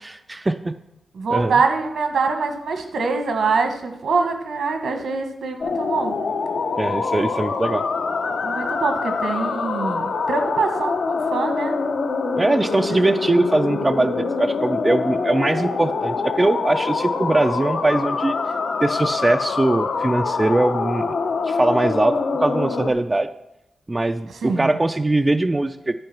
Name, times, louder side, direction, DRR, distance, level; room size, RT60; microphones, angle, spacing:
voice 1, 0.1-0.8 1.3-1.5 6.8-7.8 12.4-18.4 18.8-21.2 21.5-23.3 23.9-25.9, right 2 dB, 20° right, 8 dB, 0.3 m, -21 dB
voice 2, 1.1-6.2 8.4-11.7 24.4-24.7, right 4 dB, 75° right, 5 dB, 1.4 m, -24 dB
sound 1, 5.6-22.9, left 4 dB, 75° left, 0.9 m, -25 dB
10.5 x 4.7 x 5.9 m, 0.85 s
wide cardioid pair, 130°, 0 cm